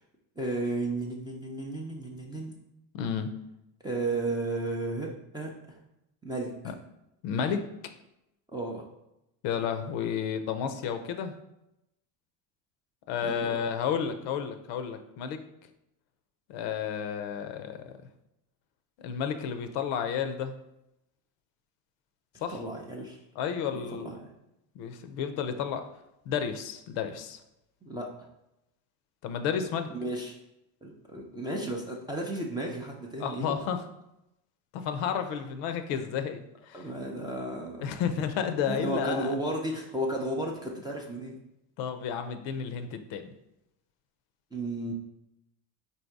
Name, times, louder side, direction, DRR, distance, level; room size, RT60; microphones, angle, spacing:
voice 1, 0.4-2.5 3.8-5.8 6.2-6.7 8.5-8.8 13.2-13.6 22.5-23.2 23.7-24.2 27.8-28.1 29.9-30.4 30.8-33.6 36.7-37.9 38.7-41.4 44.5-44.9, right 2 dB, 10° right, -1 dB, 0.4 m, -33 dB
voice 2, 2.9-3.3 6.6-6.7 7.2-7.7 9.4-11.3 13.1-15.4 16.5-17.9 19.0-20.5 22.4-22.6 23.4-24.1 24.8-25.8 26.3-27.4 29.2-29.9 33.2-33.9 34.7-36.8 37.8-39.3 41.8-43.3, left 7 dB, 60° left, 8 dB, 0.6 m, -31 dB
4.3 x 2.7 x 4.5 m, 0.86 s
supercardioid pair, 115°, 49 cm